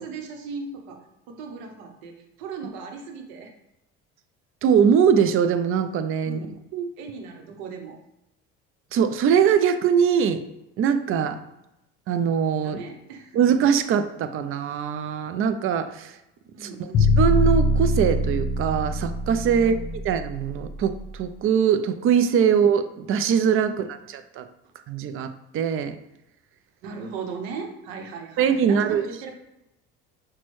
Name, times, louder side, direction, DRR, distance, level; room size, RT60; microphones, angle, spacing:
voice 1, 0.0-3.5 6.2-6.6 7.0-8.0 12.6-13.4 16.5-17.2 19.6-19.8 26.8-29.4, right 5 dB, 85° right, 4 dB, 0.8 m, -38 dB
voice 2, 4.6-6.4 6.7-6.9 8.9-10.4 10.8-11.4 12.1-12.8 13.4-16.2 16.6-16.9 17.2-24.4 24.9-26.0 28.4-29.0, right 7 dB, 45° right, 10 dB, 0.4 m, -22 dB
sound 1, 16.9-21.0, left 1 dB, 45° left, 0.6 m, -23 dB
5.9 x 2.2 x 3.1 m, 0.87 s
supercardioid pair, 90°, 31 cm